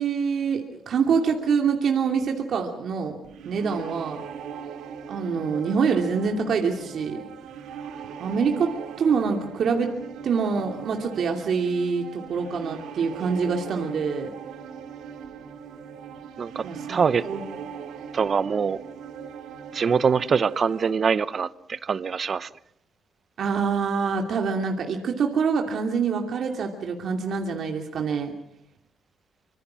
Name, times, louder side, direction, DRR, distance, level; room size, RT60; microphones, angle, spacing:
voice 1, 0.0-3.2 3.4-4.2 5.1-7.2 8.2-9.9 10.2-14.3 16.6-17.4 23.4-28.3, right 5 dB, 60° right, 2.7 m, -25 dB
sound 1, 3.2-20.9, right 7 dB, 85° right, 2.5 m, -40 dB
voice 2, 16.9-17.2 18.1-18.8 19.7-22.5, right 6 dB, 45° right, 0.9 m, -23 dB
25.5 x 24.5 x 6.2 m
cardioid pair, 90°, 0 cm